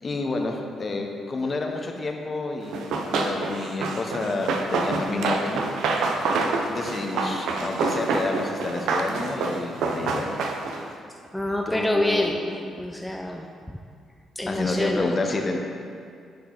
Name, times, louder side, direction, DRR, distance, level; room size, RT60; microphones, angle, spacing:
voice 1, 0.0-5.6 6.7-10.5 11.7-12.7 14.5-15.6, left 3 dB, 35° left, 2 dB, 0.9 m, -29 dB
Run, 2.7-10.9, right 3 dB, 80° right, 0.6 m, -27 dB
voice 2, 11.3-12.4 12.8-13.5 14.4-15.1, left 1 dB, 5° left, 1 dB, 0.5 m, -26 dB
10.5 x 4.6 x 3.9 m, 2.3 s
cardioid pair, 90°, 0 cm